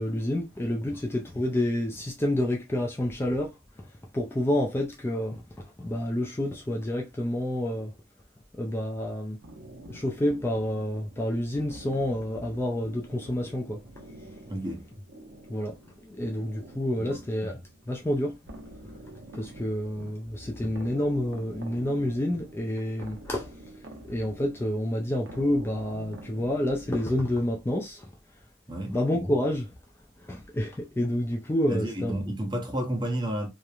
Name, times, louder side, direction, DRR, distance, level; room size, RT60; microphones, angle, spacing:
voice 1, 0.0-7.9 8.5-9.4 9.9-13.8 15.5-15.8 16.0-18.4 19.3-23.5 24.0-28.1 28.9-29.7 30.2-32.2, left 1 dB, 15° left, 0.3 m, -29 dB
sound 1, 9.4-27.5, right 1 dB, 80° right, 0.7 m, -47 dB
voice 2, 14.5-14.9 17.0-17.2 28.7-29.0 31.7-33.5, right 1 dB, 25° right, 0.7 m, -31 dB
2.9 x 2.0 x 2.3 m
head